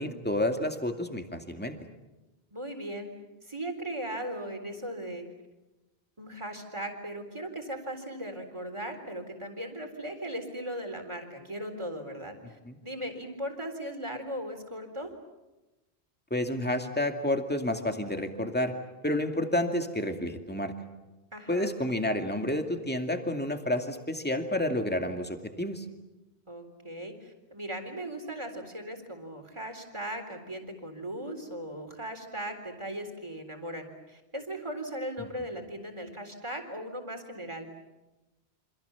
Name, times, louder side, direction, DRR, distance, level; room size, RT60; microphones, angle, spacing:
voice 1, 0.0-1.7 12.7-12.8 16.3-18.7 19.0-20.7 21.5-25.8 35.2-35.3, left 1 dB, 10° left, 5 dB, 2.3 m, -30 dB
voice 2, 2.5-3.1 3.4-5.2 6.2-12.6 12.8-15.1 21.3-21.7 26.5-37.7, right 1 dB, 25° right, 5 dB, 3.9 m, -38 dB
28.5 x 26.5 x 7.1 m, 1.1 s
omnidirectional pair, 1.1 m